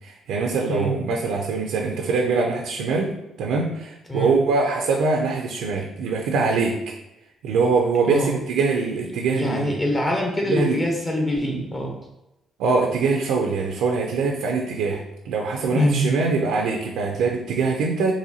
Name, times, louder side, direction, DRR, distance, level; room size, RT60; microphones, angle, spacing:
voice 1, 0.0-3.1 3.4-6.7 7.4-9.7 10.4-10.8 12.6-18.1, right 4 dB, 90° right, 1 dB, 0.4 m, -23 dB
voice 2, 4.1-4.4 8.0-8.3 9.3-11.9 15.7-16.0, equal, 25° left, 0 dB, 0.8 m, -24 dB
4.0 x 2.6 x 2.8 m, 0.92 s
cardioid pair, 90°, 0 cm